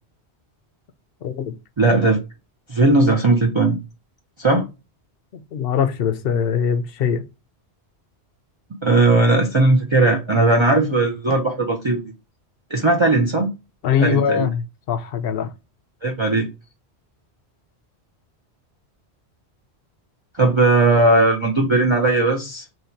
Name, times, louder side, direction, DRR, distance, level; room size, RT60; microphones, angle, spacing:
voice 1, 1.2-1.5 5.3-7.2 13.8-14.6 14.9-15.5, left 8 dB, 65° left, 0.7 m, -22 dB
voice 2, 1.8-2.2 2.7-3.8 4.4-4.6 8.8-12.0 12.7-13.5 14.0-14.5 16.0-16.5 20.3-22.6, right 2 dB, 35° right, 0.5 m, -17 dB
3.0 x 2.8 x 4.4 m
omnidirectional pair, 1.1 m